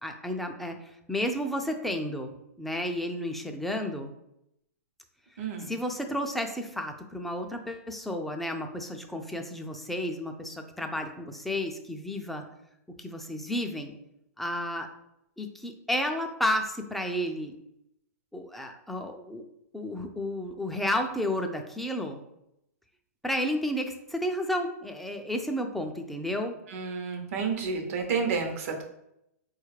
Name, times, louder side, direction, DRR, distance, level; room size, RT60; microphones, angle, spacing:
voice 1, 0.0-2.3 2.6-4.1 5.7-12.4 13.0-13.9 14.4-14.9 15.4-17.6 18.3-19.5 19.7-22.2 23.2-26.6, left 1 dB, ahead, 4 dB, 0.4 m, -32 dB
voice 2, 5.4-5.7 26.7-28.8, right 5 dB, 60° right, 4 dB, 0.8 m, -30 dB
4.1 x 2.4 x 3.2 m, 0.81 s
hypercardioid pair, 125°, 9 cm